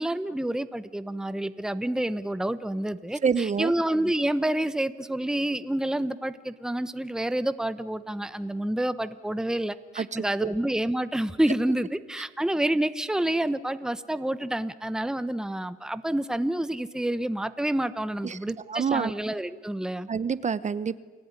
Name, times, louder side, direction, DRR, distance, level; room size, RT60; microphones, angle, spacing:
voice 1, 0.0-20.1, right 1 dB, 5° right, 13 dB, 1.0 m, -28 dB
voice 2, 3.2-3.7 10.0-10.1 10.4-10.5 18.2-19.1 20.1-21.0, right 6 dB, 35° right, 15 dB, 1.0 m, -27 dB
29.5 x 19.5 x 9.8 m, 1.4 s
cardioid pair, 90°, 20 cm